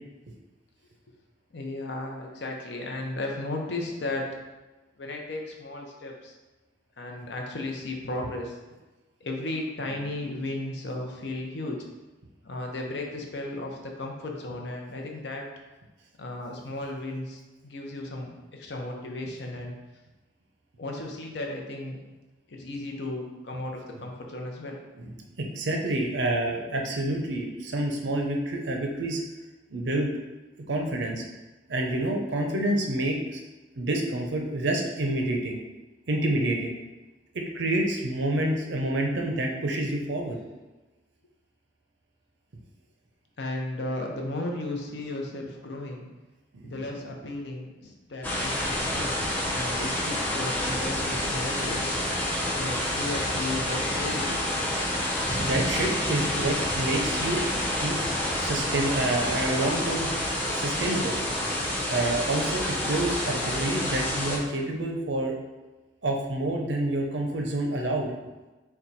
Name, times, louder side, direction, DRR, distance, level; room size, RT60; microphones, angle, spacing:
voice 1, 1.5-4.3 5.0-6.3 7.0-8.5 9.2-11.8 12.4-15.5 16.2-19.7 20.8-22.0 22.5-24.8 43.4-46.1 46.6-51.8 52.4-54.4, left 2 dB, 65° left, 1 dB, 0.7 m, -35 dB
voice 2, 25.0-29.2 29.7-30.1 30.7-31.2 31.7-33.4 33.8-35.6 36.1-36.7 37.3-40.4 46.5-46.8 55.4-57.4 57.8-58.1 58.4-60.1 60.5-61.1 61.9-65.4 66.0-68.1, right 1 dB, 75° right, 1 dB, 0.6 m, -28 dB
sound 1, 48.2-64.4, left 1 dB, 10° left, 0.7 m, -28 dB
4.4 x 2.2 x 4.0 m, 1.1 s
head